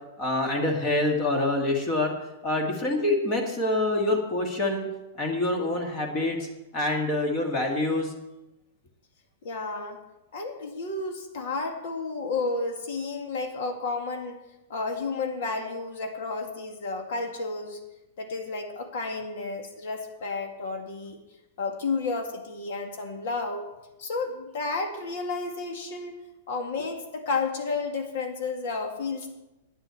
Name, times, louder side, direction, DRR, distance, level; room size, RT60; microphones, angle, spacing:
voice 1, 0.2-2.1 2.4-4.9 5.1-6.5 6.7-8.1, left 2 dB, 25° left, 2 dB, 2.0 m, -26 dB
voice 2, 9.4-10.0 10.3-14.4 14.7-17.8 18.2-21.2 21.6-23.7 24.0-26.2 26.5-29.3, left 3 dB, 60° left, 4 dB, 2.1 m, -31 dB
9.7 x 7.9 x 8.3 m, 0.95 s
supercardioid pair, 160°, 0 cm